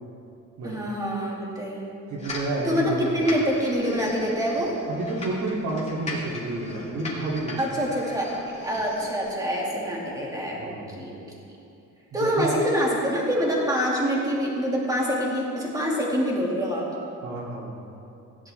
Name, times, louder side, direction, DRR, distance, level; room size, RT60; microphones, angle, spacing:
voice 1, 0.6-1.9 2.6-4.7 7.6-8.3 8.6-11.2 12.1-16.9, equal, 10° right, -4 dB, 2.2 m, -26 dB
voice 2, 2.1-3.3 4.9-7.6 10.6-10.9 12.1-12.6 17.2-17.9, right 2 dB, 65° right, -4 dB, 2.9 m, -30 dB
sound 1, 2.2-9.3, left 2 dB, 20° left, 2.3 m, -39 dB
17.0 x 10.5 x 3.4 m, 2.8 s
cardioid pair, 160°, 31 cm